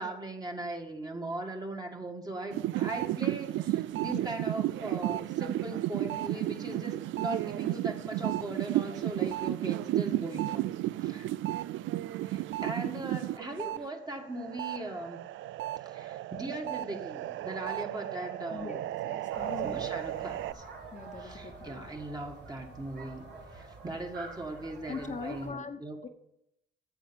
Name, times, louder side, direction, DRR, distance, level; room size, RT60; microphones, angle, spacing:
voice 1, 0.0-10.7 11.0-11.3 12.2-15.2 15.8-18.7 19.6-20.7 21.2-23.3 23.5-26.1, right 2 dB, 20° right, 3 dB, 2.1 m, -39 dB
sound 1, 2.5-13.8 14.2-20.5, right 14 dB, 75° right, 0.4 m, -33 dB
voice 2, 18.5-20.2 20.9-21.9 24.9-26.1, left 5 dB, 35° left, 5 dB, 1.1 m, -42 dB
sound 2, 19.3-25.5, right 3 dB, 60° right, 2.9 m, -47 dB
9.3 x 7.5 x 7.2 m, 0.80 s
cardioid pair, 90°, 20 cm